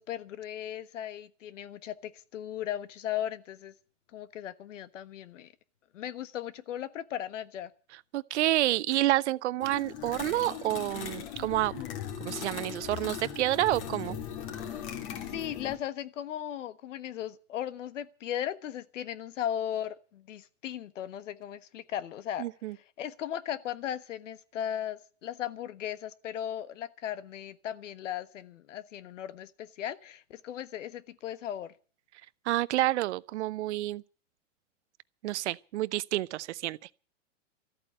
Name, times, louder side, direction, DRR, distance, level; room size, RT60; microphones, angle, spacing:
voice 1, 0.0-3.7 4.1-5.5 5.9-7.7 15.3-22.5 23.0-31.7, left 10 dB, 75° left, 1.4 m, -37 dB
voice 2, 8.1-11.8 12.2-14.2 22.4-22.8 32.5-34.0 35.2-36.8, right 15 dB, 65° right, 0.7 m, -29 dB
sound 1, 9.6-15.8, left 9 dB, 50° left, 3.1 m, -39 dB
14.0 x 8.8 x 9.9 m
hypercardioid pair, 145°, 37 cm